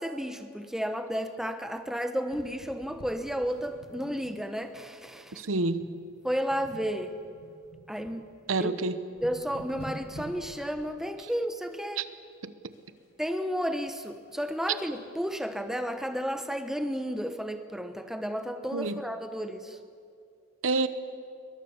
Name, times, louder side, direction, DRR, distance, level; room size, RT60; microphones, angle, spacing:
voice 1, 0.0-5.2 6.2-7.1 7.9-8.2 8.6-8.7 9.2-12.0 13.2-19.6, equal, ahead, 8 dB, 1.0 m, -32 dB
sound 1, 2.3-4.7 4.9-5.2 5.7-6.0 6.3-8.2 8.7-8.8 9.0-10.9 12.7-13.3 13.6-15.1 15.6-15.7 15.9-16.0 16.5-16.6, equal, 75° left, 4.4 m, -48 dB
voice 2, 5.4-5.8 8.5-9.0 12.0-12.1 12.4-12.5 18.7-19.0 20.6-20.9, right 3 dB, 85° right, 13 dB, 1.0 m, -28 dB
22.5 x 20.0 x 7.2 m, 2.3 s
head